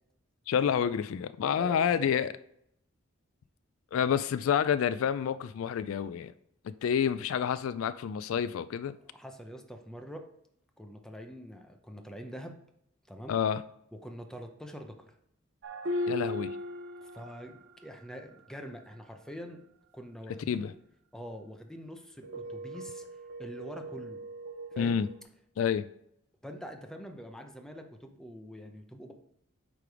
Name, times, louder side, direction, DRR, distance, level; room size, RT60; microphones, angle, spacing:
voice 1, 0.5-2.3 3.9-6.3 6.6-8.9 13.3-13.6 16.1-16.6 20.5-20.7 24.8-25.1 25.6-25.9, left 8 dB, 75° left, 14 dB, 0.3 m, -28 dB
voice 2, 1.5-2.1 9.1-10.2 10.8-12.5 13.1-13.4 14.0-15.1 17.0-19.6 19.9-20.7 21.1-23.0 23.4-24.2 24.7-25.0 26.4-29.1, equal, 5° left, 4 dB, 0.7 m, -45 dB
sound 1, 15.6-17.8 22.2-25.2, left 1 dB, 60° right, 0.7 m, -38 dB
8.5 x 3.4 x 4.7 m, 0.74 s
head